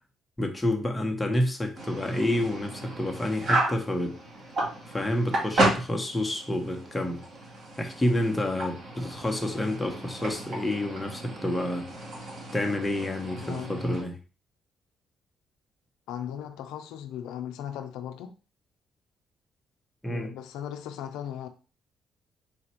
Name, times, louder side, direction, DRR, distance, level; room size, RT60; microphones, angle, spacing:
voice 1, 0.4-4.2 4.9-7.2 7.8-11.9 12.5-14.2 20.0-20.3, left 1 dB, 10° left, 1.0 m, -29 dB
sound 1, 1.7-14.0, right 2 dB, 55° right, 1.9 m, -33 dB
voice 2, 13.4-13.8 16.1-18.3 20.1-21.5, left 10 dB, 85° left, 0.5 m, -37 dB
4.1 x 2.5 x 4.4 m
cardioid pair, 75°, 0 cm